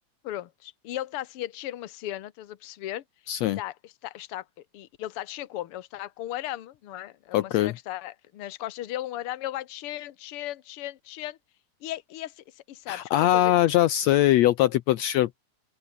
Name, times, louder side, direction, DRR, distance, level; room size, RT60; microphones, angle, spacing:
voice 1, 0.2-3.0 3.4-4.5 4.7-11.4 11.8-13.5, left 14 dB, 60° left, 1.9 m, -36 dB
voice 2, 3.3-3.6 7.3-7.7 12.9-15.4, left 14 dB, 75° left, 1.9 m, -22 dB
open air
omnidirectional pair, 3.4 m